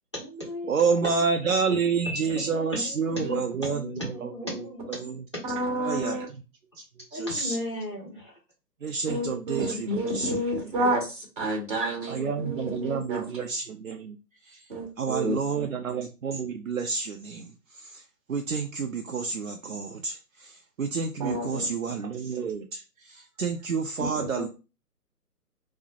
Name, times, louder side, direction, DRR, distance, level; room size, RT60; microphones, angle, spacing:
voice 1, 0.1-1.3 1.7-5.2 7.1-8.4, left 1 dB, 20° left, -7 dB, 0.6 m, -36 dB
voice 2, 0.7-3.8 4.2-4.3 5.0-5.1 5.8-6.2 6.8-6.9 7.1-7.6 8.8-10.3 12.1-14.2 14.5-14.6 15.0-17.5 17.8-18.0 18.3-24.5, right 5 dB, 60° right, 3 dB, 0.5 m, -29 dB
voice 3, 5.4-6.3 9.1-13.2 14.7-15.4 21.2-21.7 24.0-24.4, right 1 dB, 30° right, 0 dB, 1.3 m, -30 dB
4.4 x 2.0 x 2.4 m, 0.30 s
figure-of-eight pair, 145°, 49 cm